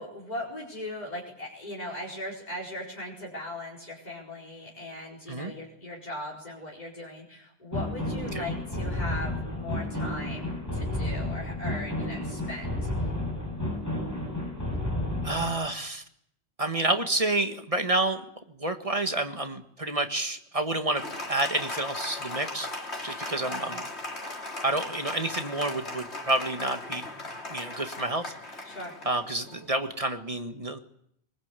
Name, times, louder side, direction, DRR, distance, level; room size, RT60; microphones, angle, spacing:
voice 1, 0.0-13.1 23.6-23.7 28.6-29.0, left 1 dB, 40° left, -4 dB, 5.0 m, -39 dB
sound 1, 7.7-15.5, left 1 dB, 15° left, 7.8 m, -31 dB
voice 2, 15.2-16.0 16.6-22.7 23.0-23.9 24.6-27.0 27.5-28.3 29.0-30.8, right 2 dB, 30° right, 7 dB, 1.8 m, -29 dB
Applause, 20.9-29.9, left 2 dB, 90° left, 3.5 m, -38 dB
23.5 x 20.5 x 8.4 m, 0.71 s
omnidirectional pair, 1.1 m